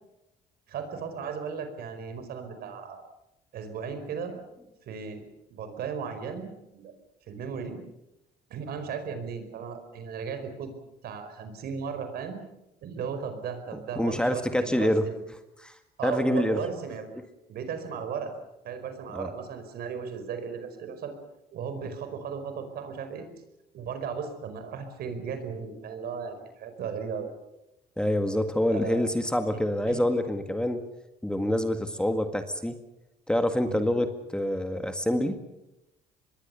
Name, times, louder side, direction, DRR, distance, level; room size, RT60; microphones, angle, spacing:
voice 1, 0.7-3.0 3.5-4.4 4.8-5.2 5.5-6.9 7.3-7.8 8.5-10.7 11.0-12.4 12.8-15.2 16.0-17.1 17.5-18.3 18.6-21.1 21.5-23.3 23.7-27.3 28.7-29.0 29.9-30.0 33.7-33.9, right 6 dB, 65° right, 8 dB, 4.9 m, -36 dB
voice 2, 14.0-15.0 15.6-16.6 19.1-19.3 28.0-30.8 31.2-32.8 33.3-35.4, left 1 dB, 5° left, 7 dB, 1.9 m, -26 dB
25.0 x 21.5 x 7.0 m, 0.90 s
cardioid pair, 110°, 17 cm